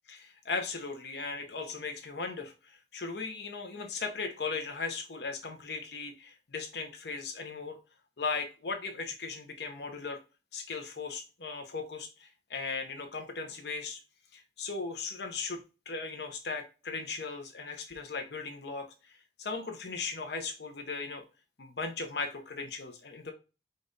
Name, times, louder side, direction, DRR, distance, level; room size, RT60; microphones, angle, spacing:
voice 1, 0.1-7.8 8.2-10.2 10.5-14.0 14.3-21.2 21.6-23.3, left 4 dB, 70° left, 5 dB, 0.8 m, -37 dB
5.3 x 2.5 x 3.9 m, 0.30 s
head